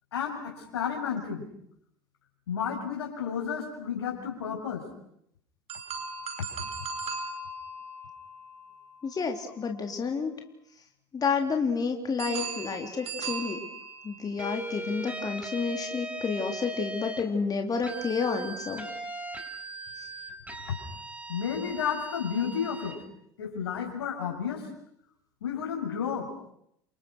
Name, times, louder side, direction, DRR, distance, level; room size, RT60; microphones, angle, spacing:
voice 1, 0.1-1.5 2.5-4.9 6.4-6.5 20.7-20.8 21.3-23.0 23.4-24.7 25.4-26.3, left 7 dB, 85° left, 3 dB, 6.9 m, -32 dB
sound 1, 5.7-9.8 12.2-14.5, right 4 dB, 50° right, 5.8 m, -38 dB
voice 2, 9.0-10.3 11.1-13.6 14.0-18.8, left 5 dB, 30° left, 4 dB, 3.7 m, -30 dB
sound 2, 14.4-17.3 17.8-23.0, right 2 dB, 10° right, 6.1 m, -39 dB
28.5 x 26.5 x 6.4 m, 0.74 s
hypercardioid pair, 80°, 13 cm